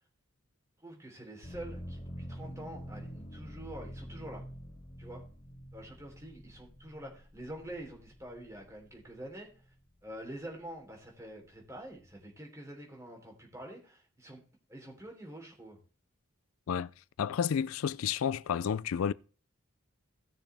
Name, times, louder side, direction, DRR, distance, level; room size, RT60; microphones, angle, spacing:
voice 1, 0.8-4.4 5.0-5.2 5.7-9.7 10.0-14.4 14.7-15.8, right 1 dB, 15° right, 3.3 m, -46 dB
sound 1, 1.4-9.2 9.7-10.5, equal, 45° left, 2.3 m, -47 dB
voice 2, 17.2-19.1, left 7 dB, 90° left, 0.4 m, -31 dB
17.0 x 6.7 x 3.4 m
head